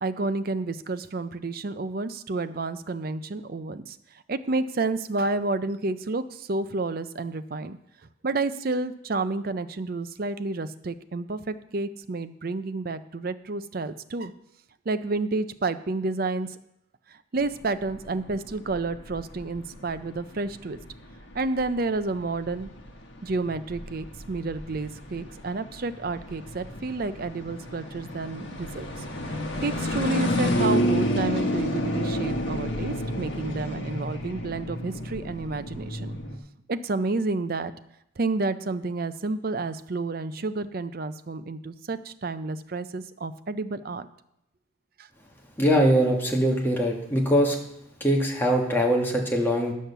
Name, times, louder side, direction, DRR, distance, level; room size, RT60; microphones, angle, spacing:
voice 1, 0.0-4.0 4.3-7.8 8.2-14.3 14.9-16.5 17.1-20.8 21.3-22.7 23.2-29.0 29.6-36.2 36.7-37.7 38.2-44.1 45.0-45.1, right 3 dB, 50° right, 12 dB, 0.5 m, -30 dB
sound 1, 17.4-36.4, equal, 65° left, 1.6 m, -31 dB
voice 2, 45.6-47.5 48.0-49.7, equal, 10° left, 0 dB, 1.5 m, -22 dB
10.5 x 6.5 x 6.7 m, 0.80 s
head